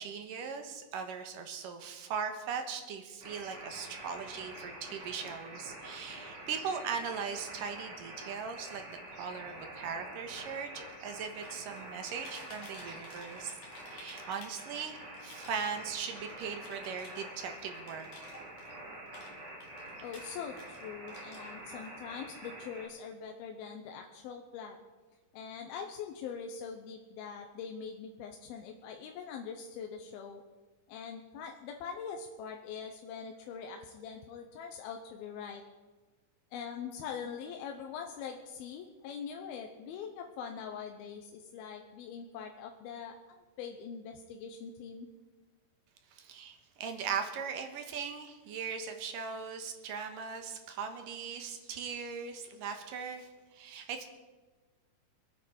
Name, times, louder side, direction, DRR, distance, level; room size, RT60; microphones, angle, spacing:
voice 1, 0.0-13.5 13.9-18.1 46.1-54.1, right 6 dB, 70° right, 5 dB, 2.7 m, -39 dB
sound 1, 3.2-22.9, right 1 dB, 30° right, 3.4 m, -47 dB
sound 2, 11.3-11.9 12.1-14.9 15.1-18.8 19.1-20.8 21.1-21.9, left 3 dB, 60° left, 3.7 m, -54 dB
voice 2, 20.0-24.8 25.3-30.4 30.9-35.6 36.5-45.1, left 6 dB, 90° left, 3 dB, 2.8 m, -43 dB
26.0 x 9.1 x 4.4 m, 1.3 s
omnidirectional pair, 4.2 m